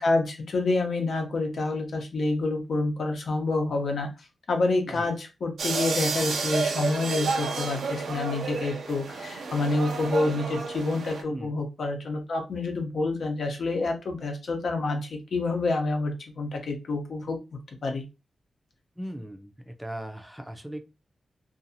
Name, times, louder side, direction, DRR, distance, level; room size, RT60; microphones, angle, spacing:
voice 1, 0.0-4.1 4.5-17.4 17.8-18.0, left 2 dB, 70° left, 3 dB, 0.7 m, -28 dB
sound 1, 5.6-11.2, right 4 dB, 85° right, 0.5 m, -31 dB
voice 2, 19.0-20.8, right 1 dB, 5° right, 6 dB, 0.5 m, -38 dB
2.6 x 2.4 x 2.7 m, 0.26 s
cardioid pair, 85°, 0 cm